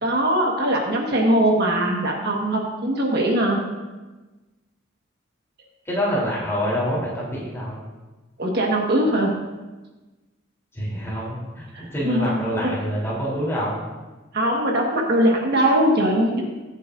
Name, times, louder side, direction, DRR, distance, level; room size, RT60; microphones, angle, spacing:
voice 1, 0.0-3.6 8.4-9.3 11.7-12.7 14.3-16.4, right 1 dB, 50° right, -1 dB, 1.6 m, -21 dB
voice 2, 5.9-7.8 10.7-13.8, equal, 10° left, -6 dB, 3.5 m, -26 dB
21.5 x 8.3 x 2.6 m, 1.2 s
head